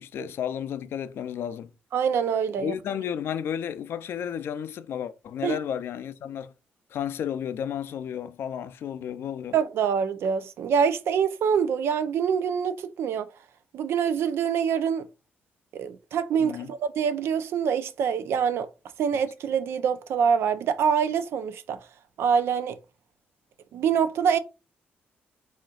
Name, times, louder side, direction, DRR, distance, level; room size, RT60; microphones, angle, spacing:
voice 1, 0.0-1.7 2.6-6.5 6.9-9.6 16.4-16.7, left 9 dB, 70° left, 0.5 m, -32 dB
voice 2, 1.9-2.7 5.4-5.6 9.5-13.3 13.7-15.1 15.8-18.7 19.0-21.8 22.2-22.8 23.7-24.4, right 7 dB, 75° right, 0.6 m, -25 dB
4.2 x 3.7 x 2.4 m
cardioid pair, 135°, 4 cm